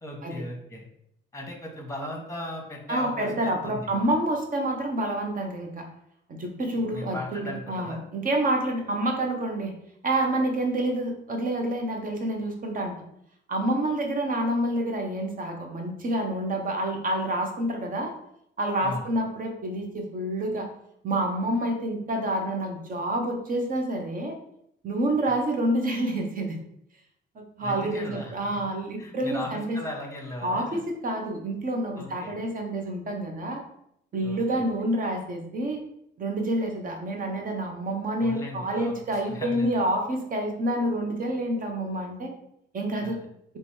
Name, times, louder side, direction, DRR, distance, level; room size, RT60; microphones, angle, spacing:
voice 1, 0.0-0.8 1.3-3.9 6.9-8.0 18.8-19.1 27.6-28.6 29.0-30.8 32.0-32.3 34.2-34.6 38.2-39.0 39.3-39.7 43.0-43.1, left 1 dB, 15° left, 1 dB, 1.3 m, -37 dB
voice 2, 2.9-5.8 6.3-9.7 10.0-12.9 13.5-18.1 18.6-20.7 21.0-24.4 24.8-26.5 27.3-29.8 30.4-33.6 34.1-35.8 36.2-42.3 42.7-43.2, right 1 dB, 45° right, 3 dB, 1.0 m, -28 dB
3.4 x 3.0 x 4.6 m, 0.75 s
cardioid pair, 90°, 20 cm